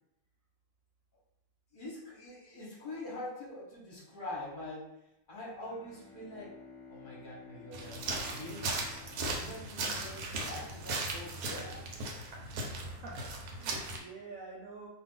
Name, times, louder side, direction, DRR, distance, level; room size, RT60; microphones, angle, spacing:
voice 1, 1.7-4.9 5.3-6.5 6.9-8.8 9.3-11.8, left 1 dB, 40° left, -6 dB, 0.9 m, -44 dB
Bowed string instrument, 5.4-10.2, left 4 dB, 20° right, 0.6 m, -54 dB
sound 1, 7.7-14.0, right 2 dB, 85° right, 1.1 m, -37 dB
voice 2, 12.7-14.9, right 3 dB, 70° right, -3 dB, 1.0 m, -48 dB
2.6 x 2.4 x 3.6 m, 0.86 s
omnidirectional pair, 1.6 m